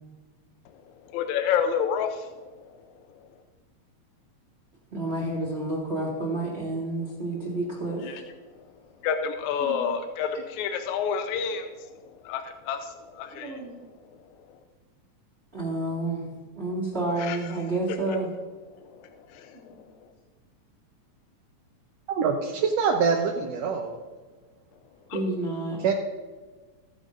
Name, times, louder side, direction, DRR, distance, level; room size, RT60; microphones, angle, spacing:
voice 1, 1.0-2.5 8.0-8.2 9.0-13.6 17.2-17.4 18.9-19.7 25.1-25.2, left 7 dB, 85° left, 7 dB, 2.1 m, -29 dB
voice 2, 4.9-8.2 9.6-10.0 13.3-13.9 15.5-16.3 16.5-18.3 19.5-20.0 25.1-25.8, right 2 dB, 25° right, -4 dB, 1.8 m, -30 dB
voice 3, 22.1-24.0 25.8-25.9, right 5 dB, 70° right, 1 dB, 1.8 m, -24 dB
14.5 x 10.0 x 2.6 m, 1.3 s
omnidirectional pair, 3.3 m